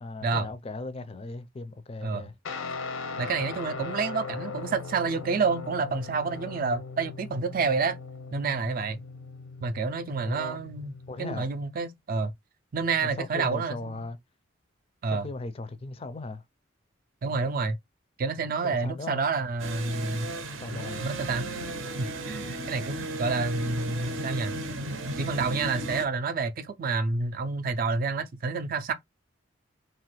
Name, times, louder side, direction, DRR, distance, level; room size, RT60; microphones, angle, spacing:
voice 1, 0.0-2.3 10.2-10.6 11.1-11.5 13.0-14.2 15.1-16.4 18.6-19.2 20.6-21.1, left 2 dB, 30° left, 0.4 m, -37 dB
Guitar, 2.4-11.4, left 4 dB, 85° left, 0.6 m, -39 dB
voice 2, 3.2-8.0 8.3-9.0 9.6-12.3 12.7-14.1 15.0-15.3 17.2-17.8 18.2-20.3 21.0-21.5 22.0-24.5 25.2-28.9, right 4 dB, 45° right, 0.4 m, -29 dB
sound 1, 19.6-26.0, right 1 dB, 80° right, 0.6 m, -35 dB
2.9 x 2.4 x 3.0 m
head